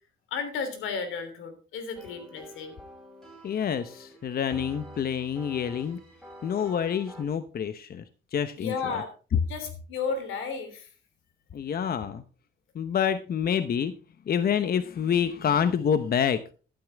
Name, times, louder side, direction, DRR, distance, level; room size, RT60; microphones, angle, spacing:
voice 1, 0.3-2.8 8.6-9.1 9.5-10.9, left 5 dB, 90° left, 9 dB, 3.2 m, -33 dB
sound 1, 1.9-7.2, right 1 dB, 5° left, 7.1 m, -47 dB
voice 2, 3.4-6.0 6.4-8.0 8.3-8.7 11.5-12.2 12.7-13.9 14.3-16.5, left 8 dB, 50° left, 12 dB, 0.9 m, -27 dB
13.0 x 11.5 x 3.5 m, 0.35 s
cardioid pair, 90°, 20 cm